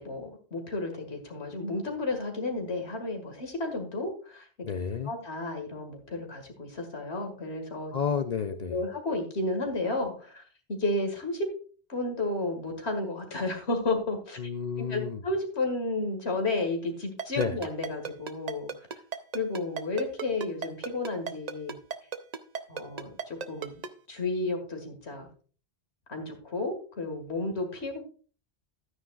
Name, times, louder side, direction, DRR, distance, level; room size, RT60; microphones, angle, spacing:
voice 1, 0.0-4.5 5.0-7.9 8.7-10.4 10.7-11.5 11.9-14.4 14.8-18.7 19.3-21.8 22.7-23.8 24.1-25.3 26.1-28.0, left 2 dB, 90° left, 4 dB, 2.2 m, -32 dB
voice 2, 4.6-5.1 7.9-8.8 14.4-15.2 17.4-17.5, left 6 dB, 50° left, 8 dB, 0.6 m, -30 dB
Ringtone, 17.2-23.9, right 6 dB, 45° right, 0.7 m, -34 dB
12.5 x 9.4 x 2.4 m, 0.40 s
omnidirectional pair, 1.1 m